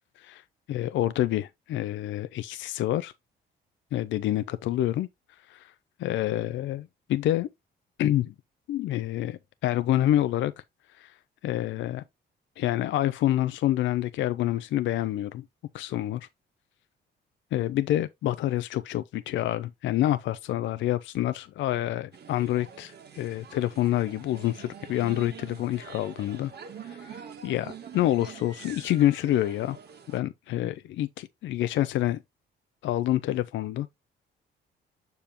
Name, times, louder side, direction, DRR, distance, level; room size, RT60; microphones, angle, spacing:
voice 1, 0.7-3.1 3.9-5.1 5.5-5.7 6.0-7.5 8.0-8.3 8.7-10.5 10.9-11.2 11.4-12.0 12.6-15.4 15.7-16.3 17.5-26.5 26.8-29.8 30.1-32.2 32.8-33.9, left 13 dB, 75° left, 0.5 m, -27 dB
sound 1, 22.1-30.2, right 7 dB, 55° right, 1.5 m, -45 dB
6.9 x 5.3 x 2.8 m
cardioid pair, 90°, 20 cm